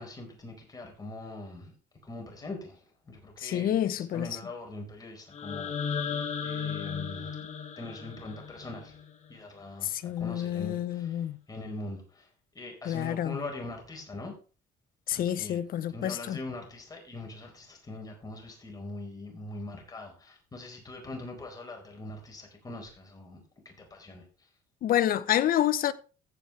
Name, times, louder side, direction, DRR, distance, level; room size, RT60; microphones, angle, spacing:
voice 1, 0.0-1.7 2.0-6.2 6.4-7.4 7.8-9.0 9.3-12.3 12.5-14.3 15.1-24.5, left 2 dB, 20° left, 4.7 m, -42 dB
voice 2, 3.4-4.3 9.8-11.4 12.9-13.4 15.1-16.4 24.8-25.9, left 11 dB, 60° left, 0.8 m, -28 dB
sound 1, 5.3-9.4, left 6 dB, 40° left, 1.8 m, -35 dB
15.0 x 7.2 x 3.3 m
cardioid pair, 110°, 17 cm